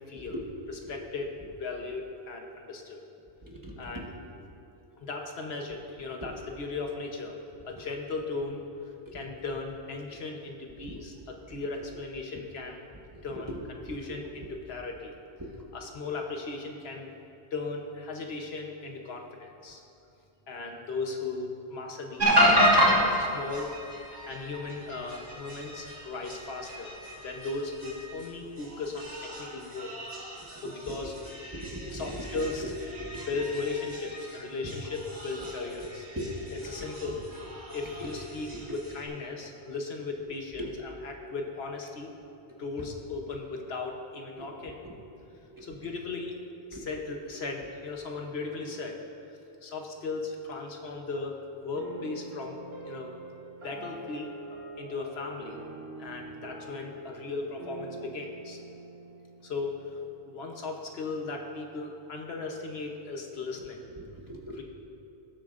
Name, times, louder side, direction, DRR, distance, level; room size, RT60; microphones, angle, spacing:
voice 1, 0.1-0.4 0.7-3.0 3.8-4.1 5.0-7.4 7.7-8.6 9.1-12.8 13.2-13.5 13.8-15.2 15.7-17.1 17.5-19.8 20.5-22.4 22.9-23.9 24.3-26.9 27.2-30.0 30.6-31.1 31.9-32.7 33.2-36.1 36.5-37.2 37.7-42.1 42.6-44.8 45.6-46.4 46.7-49.0 49.6-53.1 53.6-54.3 54.8-55.6 56.0-58.6 59.4-60.0 60.3-63.8 64.5-64.6, left 3 dB, 80° left, 2 dB, 1.2 m, -37 dB
voice 2, 3.4-4.1 9.1-9.2 13.1-13.2 13.5-13.6 13.9-14.0 15.4-15.5 31.5-32.0 32.3-32.4 33.0-33.3 36.2-36.4 38.0-38.1 40.6-40.7 44.4-44.9 45.5-45.6 46.7-46.9 56.1-56.2 64.0-64.6, right 1 dB, 20° right, -2 dB, 1.2 m, -40 dB
sound 1, 22.2-39.1, equal, 40° right, 1.7 m, -31 dB
sound 2, 51.7-60.3, right 2 dB, 75° right, 2.5 m, -44 dB
18.5 x 7.6 x 2.5 m, 2.7 s
omnidirectional pair, 1.0 m